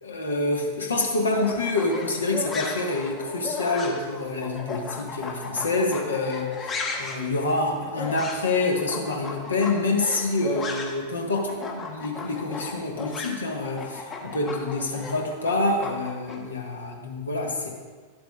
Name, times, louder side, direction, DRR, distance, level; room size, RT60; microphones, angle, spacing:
voice 1, 0.0-17.7, left 2 dB, 75° left, 1 dB, 1.2 m, -27 dB
sound 1, 1.3-11.1 11.3-16.4, left 4 dB, 25° left, 1.0 m, -35 dB
11.5 x 7.5 x 2.3 m, 1.4 s
figure-of-eight pair, 90°, 0 cm